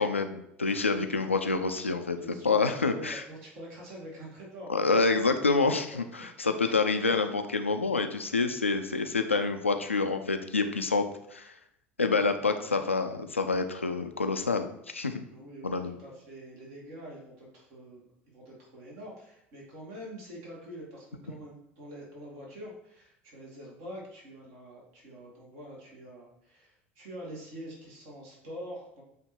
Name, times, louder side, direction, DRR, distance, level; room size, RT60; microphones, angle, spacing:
voice 1, 0.0-2.2 2.4-3.2 4.7-5.8 6.2-11.0 11.3-11.5 12.0-15.2 15.6-15.9, left 4 dB, 90° left, 7 dB, 0.5 m, -27 dB
voice 2, 2.2-5.3 5.7-5.8 6.6-7.2 12.1-12.5 15.3-29.0, equal, 55° right, -3 dB, 2.2 m, -45 dB
8.0 x 2.9 x 4.4 m, 0.77 s
figure-of-eight pair, 70°, 7 cm